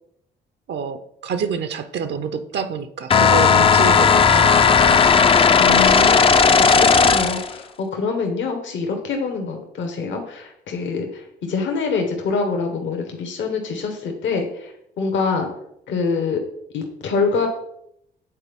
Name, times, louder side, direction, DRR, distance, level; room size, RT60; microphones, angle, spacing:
voice 1, 0.7-5.0, right 6 dB, 60° right, 9 dB, 0.6 m, -28 dB
sound 1, 3.1-7.5, left 5 dB, 30° left, 0.4 m, -14 dB
voice 2, 5.6-15.5 15.9-16.4 16.7-17.5, left 4 dB, 70° left, 3 dB, 1.2 m, -25 dB
8.5 x 4.0 x 3.5 m, 0.76 s
cardioid pair, 90°, 20 cm